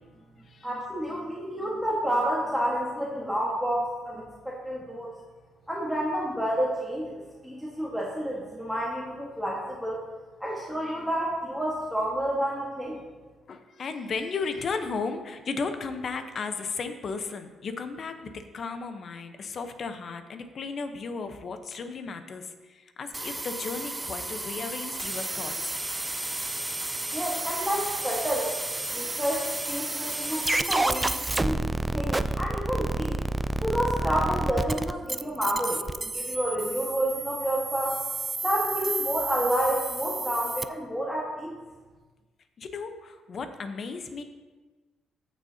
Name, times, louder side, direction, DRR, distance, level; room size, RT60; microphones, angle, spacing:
voice 1, 0.6-5.1 5.7-10.0 10.4-13.0 27.1-28.5 28.9-31.6 31.9-33.2 33.6-38.0 38.4-41.6, equal, ahead, -5 dB, 1.5 m, -29 dB
voice 2, 13.5-25.8 42.6-44.2, left 4 dB, 50° left, 8 dB, 0.9 m, -35 dB
sound 1, 23.1-40.7, right 2 dB, 15° right, 0.4 m, -31 dB
14.0 x 6.4 x 2.8 m, 1.3 s
cardioid pair, 90°, 0 cm